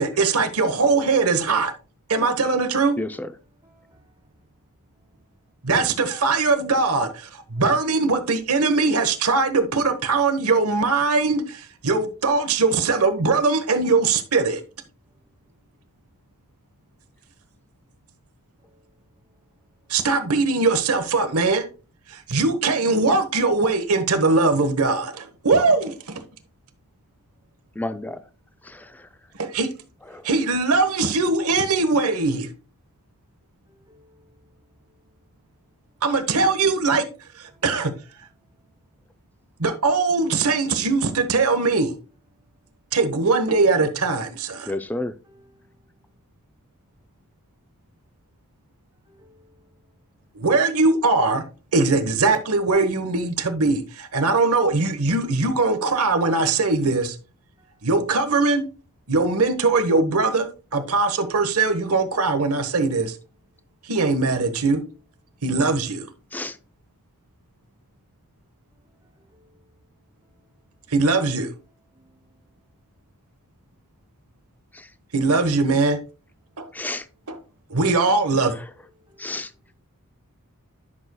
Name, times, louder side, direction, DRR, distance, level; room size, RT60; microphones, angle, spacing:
voice 1, 0.0-1.7 2.1-3.0 5.6-14.6 19.9-21.7 22.1-26.2 29.4-29.7 30.2-32.5 36.0-37.1 37.4-37.9 39.6-41.9 42.9-44.7 50.3-51.4 51.7-57.2 57.8-58.6 59.1-63.1 63.8-64.8 65.4-66.1 70.9-71.5 75.1-76.0 76.6-76.7 77.3-77.4 77.7-78.5, right 3 dB, 75° right, 1.1 m, -21 dB
voice 2, 3.0-3.3 27.8-28.2 28.7-28.9 44.7-45.1 66.3-66.6 74.7-74.9 76.7-77.0 79.2-79.5, left 2 dB, 10° left, 0.4 m, -30 dB
voice 3, 3.6-4.0 33.7-34.2 44.7-44.9 45.2-45.6 49.1-49.5 57.6-57.7 69.3-69.4 79.1-79.3, left 1 dB, 20° right, 1.1 m, -57 dB
11.0 x 6.2 x 2.2 m
head